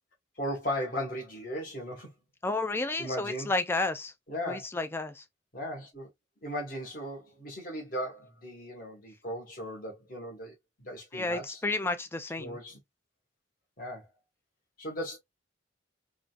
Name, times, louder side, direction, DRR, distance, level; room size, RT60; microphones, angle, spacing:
voice 1, 0.4-2.1 3.0-3.5 4.3-4.6 5.5-6.1 6.4-11.6 12.4-12.8 13.8-14.1 14.8-15.2, equal, 45° left, 1.4 m, -37 dB
voice 2, 2.4-4.1 4.5-5.2 11.1-12.6, left 2 dB, 10° left, 0.3 m, -31 dB
3.7 x 2.3 x 2.4 m
head